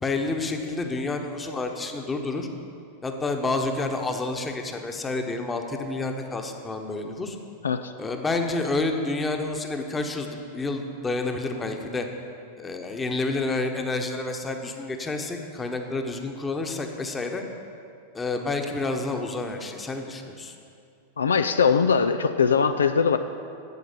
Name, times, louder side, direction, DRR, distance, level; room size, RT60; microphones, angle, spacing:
voice 1, 0.0-2.5 3.0-7.4 8.0-12.1 12.6-17.4 18.1-20.5, left 3 dB, 15° left, 4 dB, 1.1 m, -29 dB
voice 2, 21.2-23.2, left 6 dB, 75° left, 9 dB, 0.4 m, -21 dB
12.5 x 8.6 x 5.2 m, 2.5 s
figure-of-eight pair, 90°, 0 cm